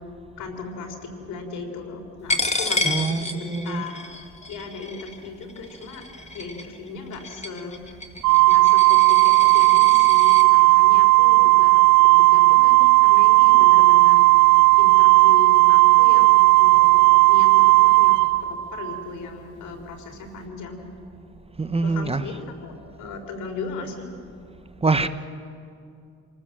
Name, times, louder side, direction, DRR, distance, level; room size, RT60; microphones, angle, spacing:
voice 1, 0.4-6.0 6.3-7.8 8.5-20.9 21.8-24.1, left 4 dB, 80° left, 4 dB, 4.0 m, -37 dB
Coin (dropping), 2.3-10.4, left 2 dB, 20° left, 2.1 m, -30 dB
voice 2, 2.8-3.8 21.6-22.4 24.8-25.1, right 3 dB, 20° right, 12 dB, 1.0 m, -24 dB
Organ, 8.2-19.0, right 26 dB, 90° right, 0.6 m, -15 dB
28.5 x 18.5 x 7.6 m, 2.4 s
cardioid pair, 90°, 30 cm